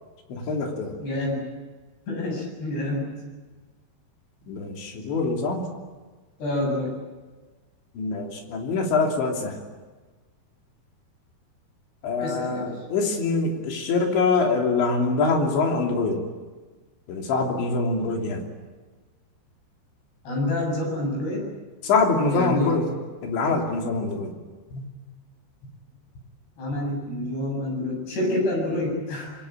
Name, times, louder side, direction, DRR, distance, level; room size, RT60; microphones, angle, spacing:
voice 1, 0.3-1.0 4.5-5.7 8.0-9.6 12.0-16.2 17.1-18.5 21.8-22.9 23.2-24.3 24.7-24.8, left 3 dB, 90° left, 1 dB, 5.5 m, -24 dB
voice 2, 1.0-1.4 2.1-3.2 6.4-6.9 12.2-12.8 20.3-21.5 22.3-22.8 26.6-29.3, left 1 dB, 65° left, -1 dB, 9.6 m, -27 dB
26.0 x 23.0 x 8.9 m, 1.3 s
omnidirectional pair, 5.0 m